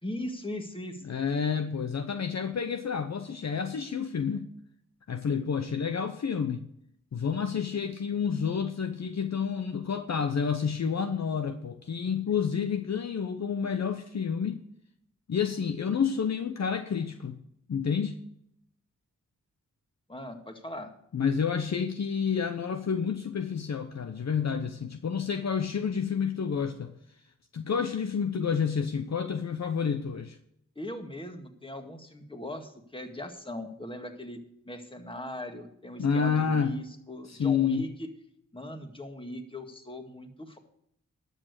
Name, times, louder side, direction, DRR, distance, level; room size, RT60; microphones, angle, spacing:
voice 1, 0.0-1.0 20.1-20.9 30.8-38.1 38.5-40.6, left 1 dB, 15° left, 1.9 m, -39 dB
voice 2, 1.0-4.5 5.1-6.7 7.1-14.6 15.3-17.4 17.7-18.2 21.1-26.9 27.5-30.4 36.0-36.8 37.3-37.8, left 6 dB, 55° left, 0.8 m, -29 dB
12.0 x 6.5 x 6.6 m
cardioid pair, 45°, 33 cm